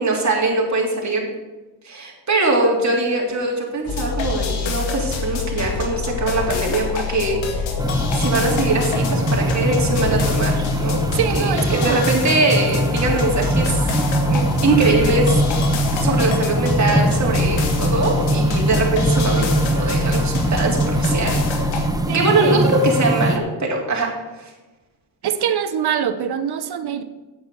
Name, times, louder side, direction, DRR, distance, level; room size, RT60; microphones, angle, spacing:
voice 1, 0.0-1.3 1.8-7.6 8.1-11.0 11.3-13.9 14.3-15.7 16.0-21.4 22.1-24.1 24.4-24.5, right 2 dB, 35° right, -1 dB, 3.5 m, -22 dB
sound 1, 3.9-21.9, left 5 dB, 75° left, 2.0 m, -26 dB
sound 2, 7.8-23.4, right 1 dB, 10° right, 1.5 m, -22 dB
voice 2, 11.1-12.0 22.1-22.7 25.2-27.0, right 8 dB, 55° right, 11 dB, 1.0 m, -24 dB
8.6 x 8.0 x 7.0 m, 1.1 s
cardioid pair, 70°, 46 cm